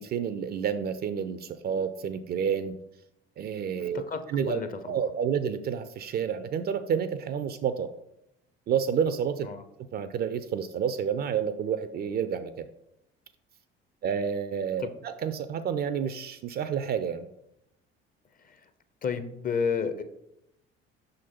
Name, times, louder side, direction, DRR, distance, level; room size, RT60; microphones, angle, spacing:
voice 1, 0.0-2.7 3.4-4.0 4.3-4.6 4.9-7.9 8.7-9.5 9.9-12.7 14.0-17.3, right 7 dB, 30° right, 12 dB, 0.4 m, -29 dB
voice 2, 3.9-5.0 9.5-9.6 14.8-14.9 18.4-18.6 19.0-20.0, left 6 dB, 30° left, 10 dB, 0.6 m, -31 dB
6.1 x 3.9 x 4.3 m, 0.82 s
figure-of-eight pair, 55°, 31 cm